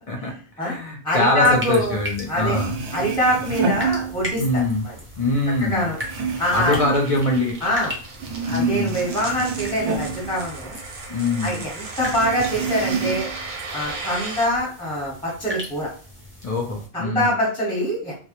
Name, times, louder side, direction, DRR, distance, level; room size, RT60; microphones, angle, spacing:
voice 1, 0.1-2.8 4.3-4.8 5.2-5.9 6.5-7.6 8.5-9.0 11.1-11.6 16.4-17.3, left 2 dB, 55° left, 0 dB, 0.4 m, -23 dB
voice 2, 1.0-2.0 2.3-2.6 2.9-4.9 5.6-6.0 6.4-6.8 7.6-7.9 8.5-10.8 11.4-13.3 13.7-15.9 16.9-18.1, equal, 5° left, -4 dB, 0.7 m, -24 dB
sound 1, 1.4-16.9, equal, 20° right, 0.3 m, -38 dB
sound 2, 2.4-4.6 4.9-7.9 8.1-11.1 11.4-11.5 12.0-13.5 13.8-14.6, right 5 dB, 85° right, 0.9 m, -29 dB
sound 3, 4.0-14.5, right 3 dB, 55° right, 0.6 m, -37 dB
2.2 x 2.0 x 2.9 m, 0.38 s
omnidirectional pair, 1.1 m